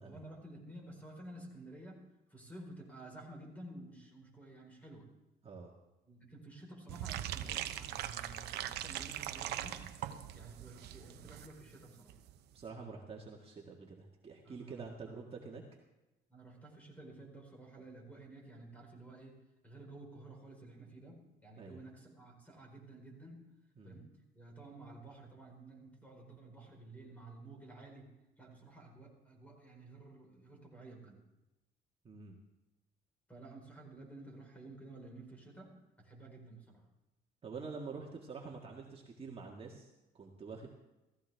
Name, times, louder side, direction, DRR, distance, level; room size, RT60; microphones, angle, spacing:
voice 1, 0.0-2.0 2.3-5.1 6.1-9.9 10.3-12.2 14.4-15.2 16.3-23.5 23.8-31.2 33.3-36.8, right 2 dB, 10° left, 1 dB, 4.4 m, -52 dB
sound 1, 6.9-11.5 11.7-11.8 12.1-12.3 12.6-12.7, right 12 dB, 75° right, 0.8 m, -41 dB
voice 2, 12.5-15.6 21.6-21.8 23.8-24.0 32.0-32.4 37.4-40.7, right 4 dB, 35° right, -1 dB, 1.8 m, -47 dB
15.5 x 15.0 x 3.5 m, 1.0 s
cardioid pair, 110°, 17 cm